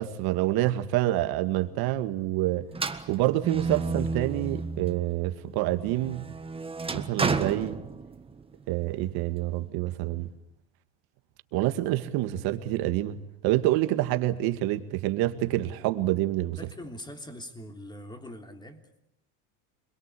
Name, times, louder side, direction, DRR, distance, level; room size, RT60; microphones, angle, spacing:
voice 1, 0.0-2.7 3.1-6.2 6.9-7.8 8.7-10.3 11.5-16.6, right 15 dB, 65° right, 2.1 m, -27 dB
sound 1, 2.7-5.1 5.6-8.4, right 4 dB, 15° right, 1.5 m, -32 dB
voice 2, 16.6-18.9, left 1 dB, 10° left, 3.4 m, -42 dB
27.0 x 21.5 x 8.5 m
supercardioid pair, 120°, 39 cm